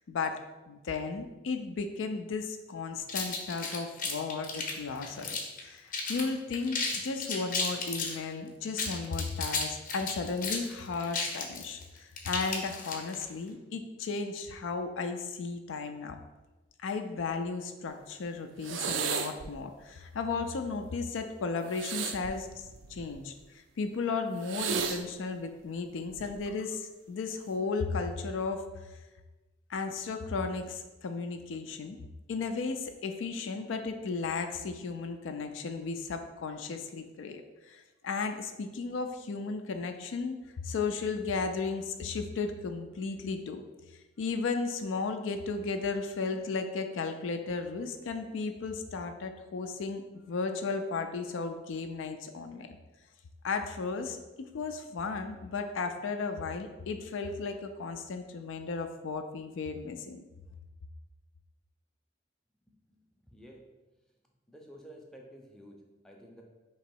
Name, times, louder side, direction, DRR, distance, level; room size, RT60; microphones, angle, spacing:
voice 1, 0.0-16.2 16.8-28.6 29.7-32.0 32.3-43.6 44.2-52.8 53.4-60.2, left 4 dB, 85° left, 7 dB, 0.4 m, -35 dB
sound 1, 3.1-5.6 5.9-6.3 6.5-8.2 8.7-13.2, left 4 dB, 45° left, 0.6 m, -34 dB
sound 2, 18.6-19.5 21.7-23.2 24.4-25.0 26.1-26.4, right 6 dB, 80° right, 0.4 m, -34 dB
voice 2, 62.7-63.1 63.3-63.6 64.5-66.4, equal, 5° left, -1 dB, 0.5 m, -52 dB
3.0 x 2.9 x 4.5 m, 1.1 s
head